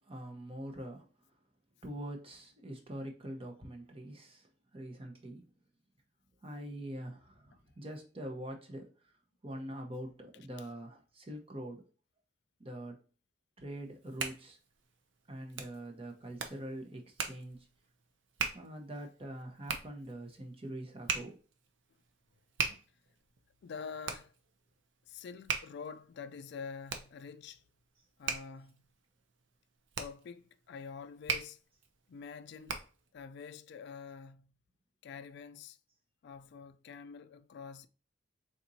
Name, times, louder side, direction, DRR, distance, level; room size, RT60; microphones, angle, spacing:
voice 1, 0.1-1.0 1.8-4.5 4.7-5.4 6.4-8.9 9.4-11.8 12.6-13.0 13.6-14.6 15.3-17.7 18.5-21.4, right 1 dB, 30° right, 0.9 m, -44 dB
Hands, 13.8-33.1, right 5 dB, 65° right, 0.7 m, -41 dB
voice 2, 23.6-24.3 25.1-27.6 28.2-28.8 30.0-31.6 32.1-32.8 33.1-34.5 35.0-35.8 36.2-37.9, left 6 dB, 60° left, 0.3 m, -46 dB
4.3 x 3.9 x 2.7 m
head